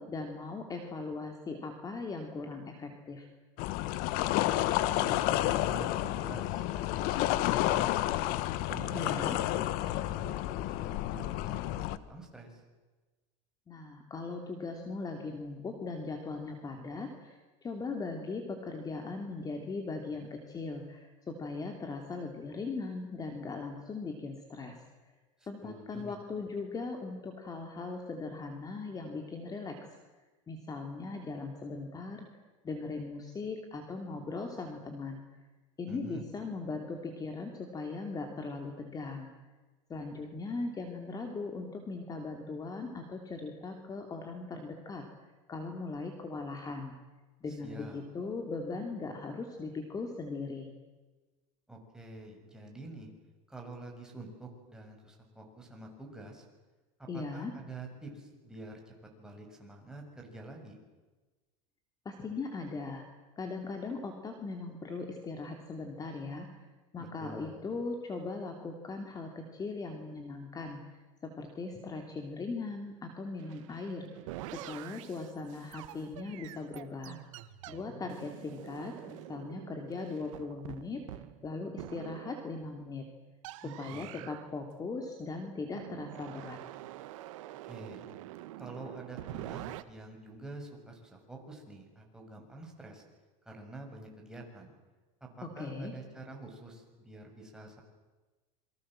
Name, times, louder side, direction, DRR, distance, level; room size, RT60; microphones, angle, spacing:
voice 1, 0.0-3.3 8.9-9.4 13.7-24.8 25.5-30.0 30.5-32.3 32.6-35.2 35.8-39.3 39.9-45.0 45.5-46.9 47.4-50.7 57.1-57.5 62.0-63.0 63.4-66.5 66.9-70.8 71.2-74.1 74.5-77.2 77.7-81.0 81.4-83.0 83.8-86.6 95.4-95.9, left 3 dB, 20° left, 4 dB, 3.0 m, -39 dB
sound 1, 3.6-12.0, left 14 dB, 60° left, 1.3 m, -30 dB
voice 2, 4.4-8.1 8.6-9.6 9.9-10.4 10.7-12.6 25.4-26.2 35.9-36.2 47.5-48.0 51.7-53.1 53.5-56.4 57.0-60.8 67.0-67.6 83.6-84.3 87.6-88.1 88.6-93.0 93.4-94.7 95.2-97.8, right 2 dB, 5° right, 1 dB, 6.5 m, -47 dB
sound 2, 73.4-82.6 83.4-84.5 85.7-89.8, right 15 dB, 85° right, 1.6 m, -46 dB
28.0 x 24.0 x 7.7 m, 1.2 s
supercardioid pair, 130°, 16 cm